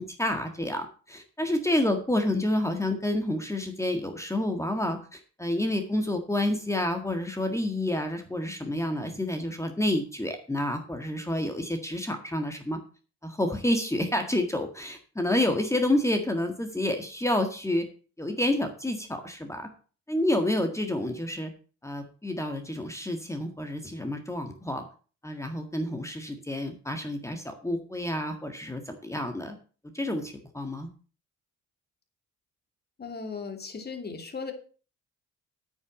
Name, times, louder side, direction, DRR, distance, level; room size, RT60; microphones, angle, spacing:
voice 1, 0.0-12.8 13.2-17.8 18.2-19.7 20.1-21.5 21.8-24.9 25.2-29.6 29.9-30.9, left 1 dB, 10° left, 5 dB, 1.8 m, -29 dB
voice 2, 33.0-34.5, left 5 dB, 30° left, 5 dB, 2.7 m, -37 dB
9.1 x 6.3 x 7.4 m, 0.39 s
cardioid pair, 90°, 30 cm